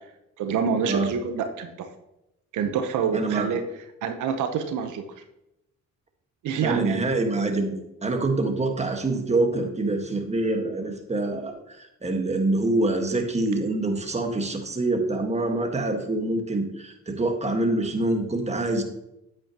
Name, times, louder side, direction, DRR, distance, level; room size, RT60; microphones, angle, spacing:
voice 1, 0.4-1.9 2.5-5.0 6.4-7.2, right 6 dB, 80° right, 7 dB, 1.0 m, -27 dB
voice 2, 3.1-3.6 6.6-18.8, right 2 dB, 20° right, 4 dB, 1.6 m, -25 dB
9.1 x 8.5 x 3.0 m, 0.85 s
cardioid pair, 90°, 30 cm